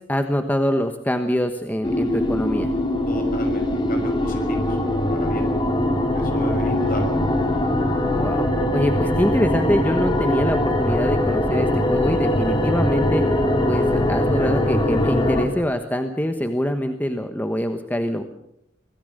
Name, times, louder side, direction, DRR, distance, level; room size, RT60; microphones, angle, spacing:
voice 1, 0.0-2.7 8.2-13.2 13.7-18.2, equal, 10° left, 6 dB, 1.2 m, -24 dB
sound 1, 1.8-15.5, left 1 dB, 25° left, 2.8 m, -21 dB
voice 2, 3.1-4.8 5.1-5.5 6.1-7.1, left 1 dB, 45° left, 4 dB, 6.0 m, -33 dB
25.5 x 17.5 x 6.6 m, 0.78 s
head